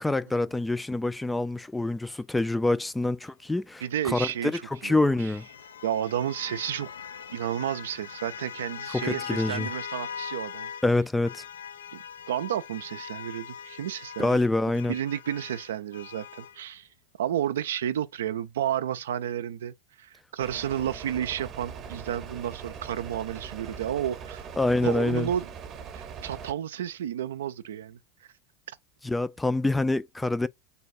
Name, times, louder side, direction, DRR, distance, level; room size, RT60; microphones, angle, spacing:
voice 1, 0.0-5.5 8.9-9.7 10.8-11.4 14.2-14.9 24.6-25.3 29.0-30.5, left 2 dB, 10° left, 0.3 m, -26 dB
voice 2, 3.8-4.5 4.8-5.0 5.8-6.9 7.3-10.7 11.9-12.0 12.3-14.4 14.9-16.9 17.2-24.5 24.8-25.5 25.9-28.0, right 10 dB, 80° right, 0.4 m, -31 dB
sound 1, 4.3-10.9 11.2-16.6, left 7 dB, 85° left, 0.3 m, -41 dB
sound 2, 20.4-26.5, right 7 dB, 40° right, 0.8 m, -41 dB
3.4 x 2.2 x 4.2 m
hypercardioid pair, 85°, 0 cm